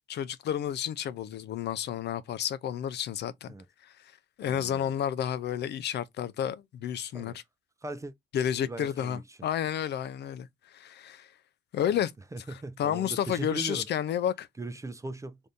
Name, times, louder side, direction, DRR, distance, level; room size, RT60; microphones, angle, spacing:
voice 1, 0.1-3.5 3.8-3.9 4.4-7.4 8.3-11.3 11.7-12.1 12.8-14.5, left 9 dB, 60° left, 0.4 m, -31 dB
voice 2, 4.4-4.9 7.1-7.4 7.8-8.1 8.6-9.4 11.9-12.0 12.3-13.9 14.6-15.5, right 2 dB, 15° right, 0.4 m, -39 dB
2.6 x 2.6 x 3.4 m
cardioid pair, 90°, 20 cm